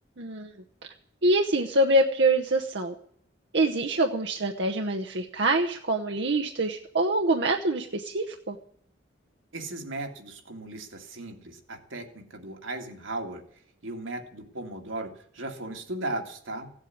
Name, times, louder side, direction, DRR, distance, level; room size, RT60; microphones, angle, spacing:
voice 1, 0.2-0.5 1.2-2.9 3.5-8.6, right 1 dB, 65° right, 2 dB, 0.9 m, -25 dB
voice 2, 9.5-13.4 13.8-16.7, right 2 dB, 85° right, 3 dB, 2.2 m, -36 dB
16.0 x 8.2 x 9.5 m, 0.65 s
head